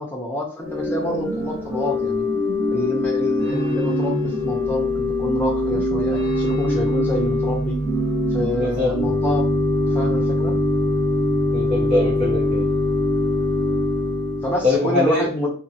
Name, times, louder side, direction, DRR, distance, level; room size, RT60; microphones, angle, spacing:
voice 1, 0.0-2.3 2.7-7.8 8.3-9.5 9.9-10.6 14.4-15.5, left 1 dB, 10° left, -2 dB, 0.9 m, -27 dB
Organ / Church bell, 0.6-14.7, left 1 dB, 15° right, 1.1 m, -22 dB
voice 2, 8.5-9.0 11.5-12.6 14.6-15.3, left 2 dB, 35° right, -6 dB, 0.8 m, -22 dB
2.8 x 2.8 x 2.9 m, 0.42 s
head